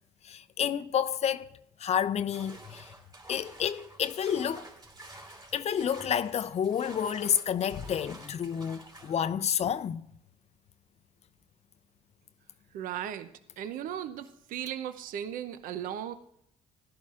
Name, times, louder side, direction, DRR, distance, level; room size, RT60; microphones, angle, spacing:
voice 1, 0.2-1.5 1.8-2.9 3.3-4.7 5.5-10.0, left 8 dB, 45° left, 0.5 m, -30 dB
sound 1, 2.3-9.2, right 2 dB, 25° right, 2.8 m, -49 dB
voice 2, 12.7-13.3 13.6-16.1, right 10 dB, 65° right, 0.7 m, -36 dB
15.5 x 11.5 x 2.5 m
supercardioid pair, 70°, 15 cm